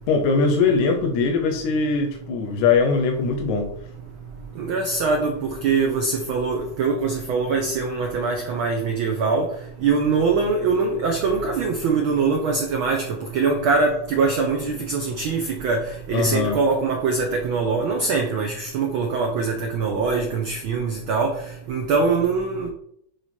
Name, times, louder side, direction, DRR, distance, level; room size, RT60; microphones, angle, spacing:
voice 1, 0.1-3.7 16.1-16.6, left 4 dB, 85° left, 2.2 m, -21 dB
voice 2, 4.6-9.5 9.8-21.4 21.7-22.7, right 4 dB, 85° right, 1.1 m, -23 dB
9.3 x 3.3 x 4.2 m
omnidirectional pair, 3.3 m